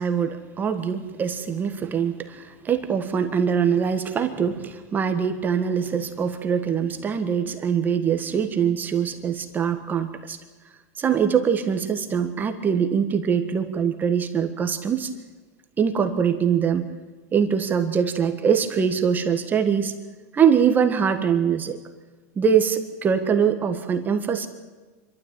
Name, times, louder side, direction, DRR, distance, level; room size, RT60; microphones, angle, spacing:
voice 1, 0.0-10.4 11.0-15.1 15.8-16.9 17.3-19.9 20.3-21.8 22.3-24.5, right 7 dB, 20° right, 7 dB, 1.6 m, -23 dB
26.0 x 12.5 x 9.0 m, 1.3 s
supercardioid pair, 140°, 9 cm